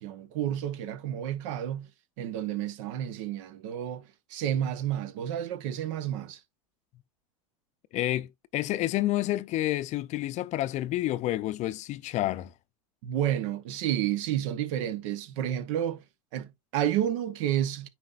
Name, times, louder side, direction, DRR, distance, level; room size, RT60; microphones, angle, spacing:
voice 1, 0.0-1.9 2.2-6.4 13.0-16.0 16.3-17.9, right 11 dB, 65° right, 0.9 m, -30 dB
voice 2, 7.9-12.5, left 15 dB, 40° left, 0.5 m, -29 dB
9.4 x 4.3 x 2.5 m
hypercardioid pair, 95°, 17 cm